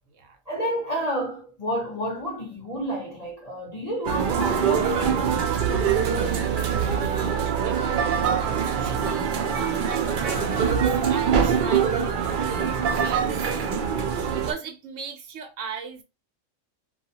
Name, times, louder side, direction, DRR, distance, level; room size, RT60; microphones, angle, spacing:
voice 1, 0.5-5.4, equal, 40° left, 0.6 m, -30 dB
sound 1, 4.0-14.5, right 7 dB, 90° right, 0.4 m, -24 dB
sound 2, 5.4-13.4, right 3 dB, 45° right, 0.6 m, -44 dB
voice 2, 6.1-13.4 14.3-16.0, right 5 dB, 70° right, 0.9 m, -38 dB
2.4 x 2.4 x 2.7 m
omnidirectional pair, 1.4 m